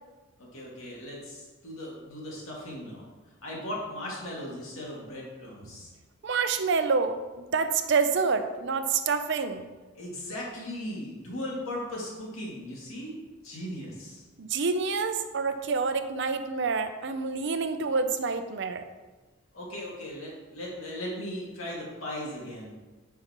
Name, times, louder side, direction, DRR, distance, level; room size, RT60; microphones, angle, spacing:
voice 1, 0.4-3.0 3.4-5.9 9.9-13.1 13.4-14.2 19.5-22.8, left 1 dB, 80° left, -4 dB, 2.2 m, -38 dB
voice 2, 6.2-9.6 14.4-18.8, right 4 dB, 60° right, 9 dB, 0.5 m, -27 dB
8.7 x 5.7 x 3.0 m, 1.3 s
head